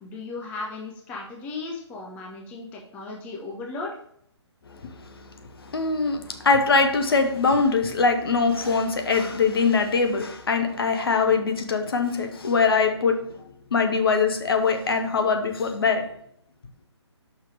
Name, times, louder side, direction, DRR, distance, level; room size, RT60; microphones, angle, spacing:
voice 1, 0.0-3.9, left 3 dB, 10° left, -1 dB, 0.6 m, -36 dB
voice 2, 5.6-13.3 13.7-16.1, left 4 dB, 55° left, 6 dB, 1.0 m, -22 dB
5.8 x 4.6 x 4.8 m, 0.68 s
figure-of-eight pair, 140°, 15 cm